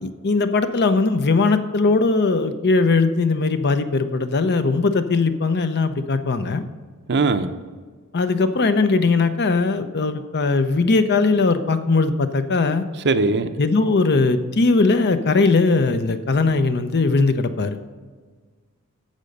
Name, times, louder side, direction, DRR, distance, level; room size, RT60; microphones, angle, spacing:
voice 1, 0.0-6.6 8.1-12.8 13.6-17.8, left 3 dB, 50° left, 10 dB, 0.7 m, -19 dB
voice 2, 7.1-7.5 13.0-13.5, right 3 dB, 50° right, 9 dB, 0.6 m, -19 dB
11.5 x 7.6 x 5.3 m, 1.5 s
head